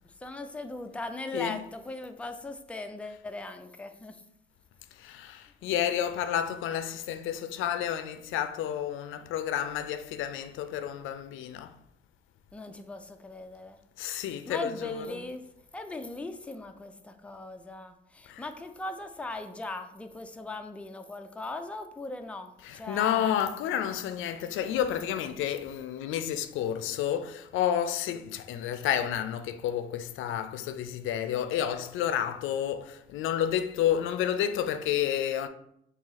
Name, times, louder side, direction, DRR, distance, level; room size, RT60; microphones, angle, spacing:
voice 1, 0.2-4.2 12.5-13.8 14.5-15.4 15.7-23.3, left 2 dB, 5° left, 0.4 m, -39 dB
voice 2, 5.0-11.8 14.0-15.2 18.3-18.4 22.6-35.5, left 10 dB, 85° left, 0.4 m, -30 dB
4.0 x 2.7 x 3.9 m
cardioid pair, 90°, 20 cm